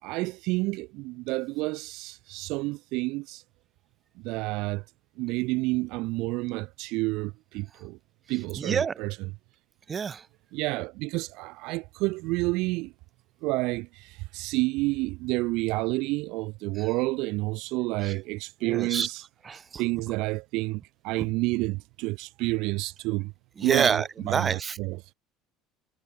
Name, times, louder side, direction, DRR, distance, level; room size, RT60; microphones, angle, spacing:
voice 1, 0.0-3.4 4.2-4.8 5.2-8.0 8.3-9.2 10.5-12.9 13.4-19.2 19.8-23.3 23.6-25.0, right 23 dB, 70° right, 3.9 m, -29 dB
voice 2, 8.6-9.0 9.9-10.3 16.8-16.9 18.0-18.1 18.6-19.1 19.4-19.8 21.2-21.3 23.6-24.8, right 6 dB, 25° right, 4.7 m, -28 dB
cardioid pair, 135°, 0 cm